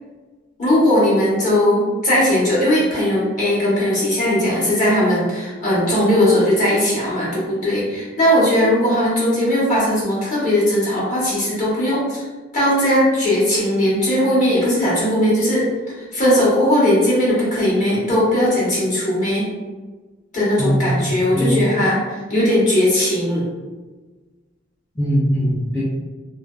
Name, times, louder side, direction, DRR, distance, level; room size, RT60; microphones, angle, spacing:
voice 1, 0.6-12.2 12.5-15.7 16.0-19.5 20.3-23.5, left 1 dB, 45° left, -8 dB, 1.1 m, -18 dB
voice 2, 20.6-21.7 25.0-25.8, equal, 15° left, -9 dB, 0.4 m, -20 dB
2.6 x 2.1 x 2.2 m, 1.3 s
head